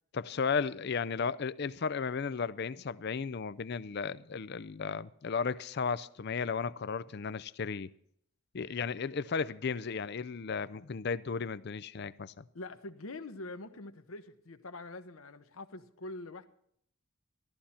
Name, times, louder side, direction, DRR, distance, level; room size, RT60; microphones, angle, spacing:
voice 1, 0.1-7.9 8.5-12.4, left 5 dB, 50° left, 0.5 m, -34 dB
voice 2, 12.5-16.5, left 2 dB, 75° left, 1.0 m, -44 dB
14.0 x 13.0 x 4.3 m
head